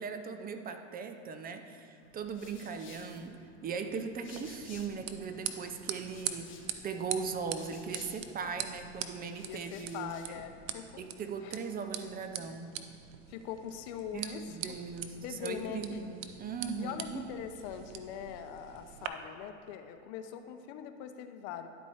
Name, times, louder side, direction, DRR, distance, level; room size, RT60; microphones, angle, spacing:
voice 1, 0.0-6.5 6.8-10.4 11.0-12.7 14.1-17.2, right 5 dB, 25° right, 7 dB, 0.6 m, -39 dB
sound 1, 2.0-5.2 5.5-8.6 9.2-10.4, left 5 dB, 35° left, 1.2 m, -56 dB
sound 2, 4.3-19.1, right 10 dB, 80° right, 0.7 m, -43 dB
voice 2, 9.2-11.0 11.4-11.6 13.3-14.4 14.7-14.8 15.2-16.0 16.8-21.7, left 9 dB, 60° left, 8 dB, 0.7 m, -42 dB
11.0 x 4.4 x 4.2 m, 2.7 s
supercardioid pair, 110°, 37 cm